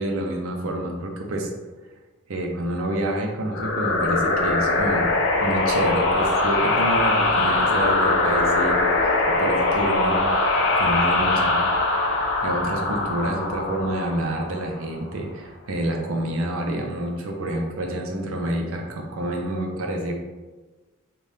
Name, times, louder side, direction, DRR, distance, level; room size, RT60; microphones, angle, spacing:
voice 1, 0.0-1.5 2.3-5.1 5.4-10.3 10.6-11.7 12.4-20.1, right 1 dB, 70° right, 2 dB, 0.5 m, -28 dB
sound 1, 3.5-14.9, left 2 dB, 55° left, 0.4 m, -22 dB
2.6 x 2.2 x 3.3 m, 1.2 s
head